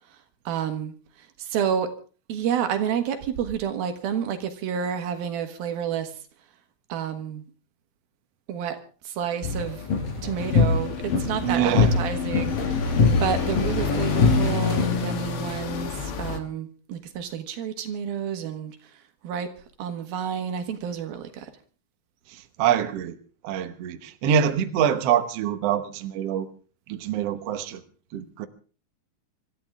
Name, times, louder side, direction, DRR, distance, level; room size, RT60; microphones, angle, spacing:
voice 1, 0.5-1.9 2.3-6.1 6.9-7.4 8.5-8.8 9.0-9.8 10.2-19.5 19.8-21.5, right 8 dB, 90° right, 3.5 m, -30 dB
sound 1, 9.4-14.9, left 4 dB, 75° left, 6.1 m, -24 dB
sound 2, 10.4-16.4, left 6 dB, 55° left, 1.7 m, -28 dB
voice 2, 11.4-11.9 22.3-23.2 23.4-26.5 26.9-27.8 28.1-28.5, right 9 dB, 65° right, 1.7 m, -25 dB
25.5 x 13.5 x 3.6 m
omnidirectional pair, 4.1 m